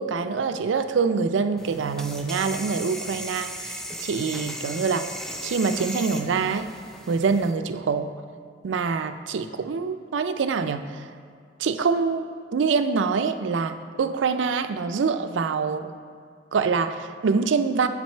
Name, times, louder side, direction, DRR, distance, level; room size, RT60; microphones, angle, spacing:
voice 1, 0.0-5.1 5.4-6.7 7.1-8.1 8.6-11.0 11.6-15.9 16.5-17.9, right 5 dB, 80° right, 9 dB, 0.4 m, -25 dB
sound 1, 1.6-7.5, equal, 5° left, 0.4 m, -37 dB
7.2 x 6.0 x 4.4 m, 2.2 s
head